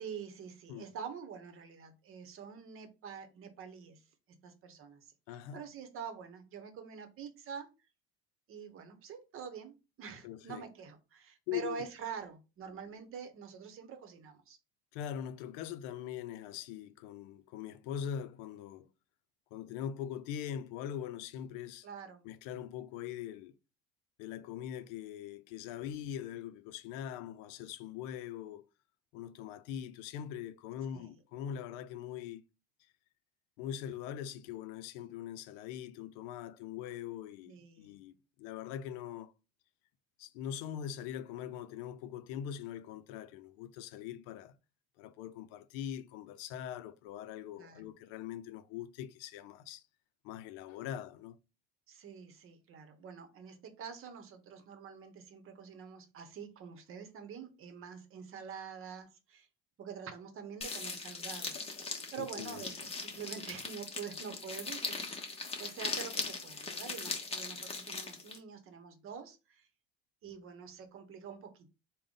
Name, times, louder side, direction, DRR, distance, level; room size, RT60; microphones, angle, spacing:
voice 1, 0.0-7.7 8.5-14.6 21.8-22.2 30.9-31.2 37.5-37.9 47.6-47.9 51.9-59.5 59.8-62.9 63.1-69.7 70.2-71.7, right 6 dB, 45° right, 0.8 m, -46 dB
voice 2, 5.3-5.6 10.2-10.6 11.5-11.8 14.9-18.9 19.5-21.9 22.2-23.5 24.2-28.6 29.1-32.4 33.6-39.3 40.2-44.5 45.0-49.8 50.2-51.4 62.2-62.7, left 9 dB, 85° left, 0.5 m, -42 dB
sound 1, 60.6-68.4, left 4 dB, 20° left, 0.8 m, -40 dB
3.6 x 2.1 x 3.7 m
supercardioid pair, 110°, 29 cm